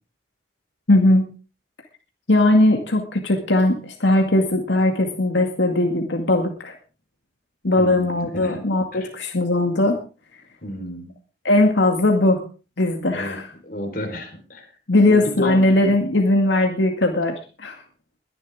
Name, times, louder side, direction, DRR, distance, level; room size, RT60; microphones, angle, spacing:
voice 1, 0.9-1.2 2.3-6.7 7.6-10.0 11.4-12.4 12.8-13.5 14.9-17.8, left 2 dB, 85° left, 3 dB, 2.1 m, -19 dB
voice 2, 7.8-8.6 8.9-9.1 10.6-11.1 13.1-14.7 15.1-15.6, left 1 dB, 50° left, 4 dB, 4.3 m, -31 dB
22.0 x 11.0 x 3.6 m, 0.34 s
head